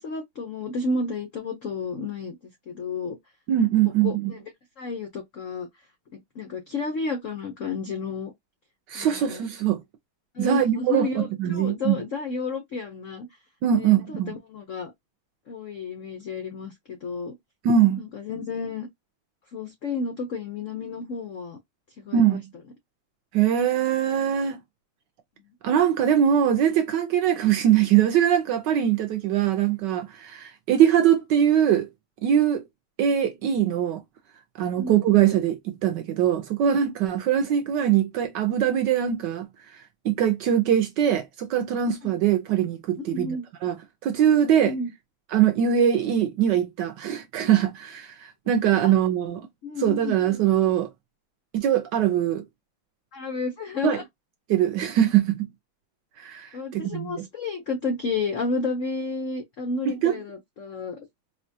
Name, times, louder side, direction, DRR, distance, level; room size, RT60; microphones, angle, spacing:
voice 1, 0.0-2.4 2.7-3.2 4.0-4.4 4.8-5.7 6.1-8.3 8.9-9.4 10.3-13.3 13.7-14.9 15.5-17.4 18.0-18.9 19.5-21.6 22.0-22.4 34.8-35.0 42.0-42.1 43.0-43.5 44.5-44.9 48.8-49.0 49.6-50.2 53.1-54.0 56.5-61.1, left 3 dB, 85° left, 0.6 m, -31 dB
voice 2, 3.5-4.3 8.9-9.8 10.4-12.0 13.6-14.3 17.6-18.0 22.1-22.4 23.3-24.6 25.6-31.9 32.2-32.6 33.0-34.0 34.6-39.5 39.7-43.4 43.6-43.8 44.0-44.7 45.3-49.4 49.8-50.9 51.5-52.4 53.8-54.0 54.5-55.5 56.2-57.3 59.9-60.2, right 9 dB, 75° right, 1.0 m, -22 dB
4.7 x 2.2 x 2.6 m
omnidirectional pair, 2.3 m